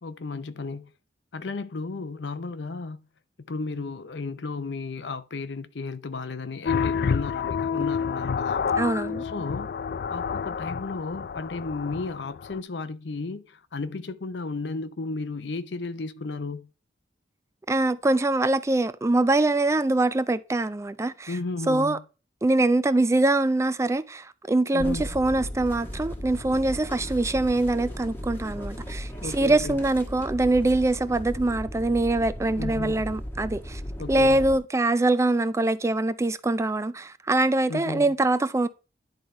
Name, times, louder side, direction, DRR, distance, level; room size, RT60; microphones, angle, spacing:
voice 1, 0.0-0.9 1.3-3.0 3.5-8.7 9.2-9.7 10.1-16.7 21.3-22.0 24.7-25.1 29.2-29.8 32.6-33.0 34.0-34.4 37.7-38.1, left 3 dB, 80° left, 0.7 m, -34 dB
sound 1, 6.6-12.6, left 6 dB, 60° left, 0.3 m, -29 dB
voice 2, 8.8-9.2 17.7-21.4 21.7-22.0 22.4-33.8 34.1-38.7, right 2 dB, 15° right, 0.4 m, -23 dB
sound 2, 24.8-34.6, equal, 15° left, 1.3 m, -36 dB
10.5 x 4.0 x 4.4 m
head